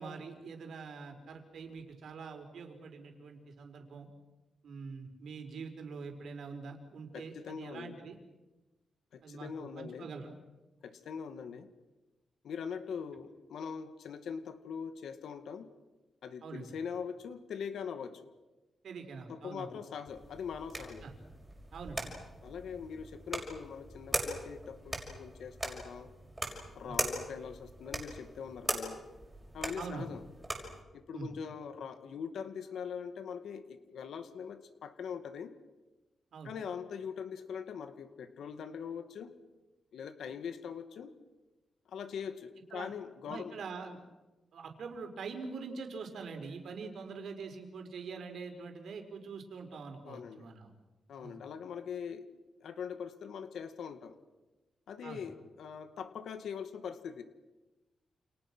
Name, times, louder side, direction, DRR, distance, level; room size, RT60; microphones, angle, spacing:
voice 1, 0.0-4.1 4.6-8.2 9.2-10.4 16.4-16.8 18.8-19.7 21.0-21.2 21.7-22.2 26.8-27.0 29.8-30.1 31.1-31.3 36.3-36.5 42.7-42.9 43.2-44.0 44.5-50.7 51.2-51.4 55.0-55.3, right 4 dB, 60° right, 5 dB, 4.8 m, -44 dB
voice 2, 7.1-8.0 9.1-10.1 10.8-11.7 12.4-15.7 16.2-18.3 19.3-21.1 22.4-26.1 26.7-29.0 29.5-30.2 30.9-35.5 36.4-39.3 39.9-41.1 41.9-43.5 50.1-50.5 51.1-52.3 52.6-54.2 54.9-57.2, left 7 dB, 75° left, 9 dB, 2.1 m, -42 dB
sound 1, 20.1-30.8, right 1 dB, 10° right, 5.8 m, -40 dB
29.5 x 29.0 x 6.2 m, 1.1 s
wide cardioid pair, 175°, 0 cm